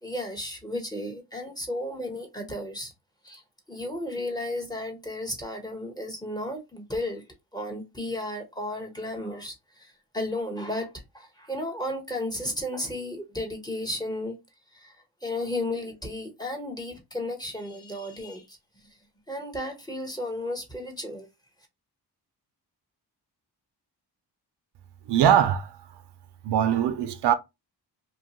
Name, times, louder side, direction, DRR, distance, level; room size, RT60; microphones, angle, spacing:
voice 1, 0.0-2.9 3.2-3.4 3.7-7.2 7.5-14.4 14.7-15.0 15.2-18.6 19.3-21.3, left 1 dB, 10° left, 1.0 m, -33 dB
voice 2, 25.1-25.7 26.4-27.3, right 9 dB, 85° right, 0.6 m, -21 dB
2.8 x 2.3 x 2.9 m
cardioid pair, 90°, 40 cm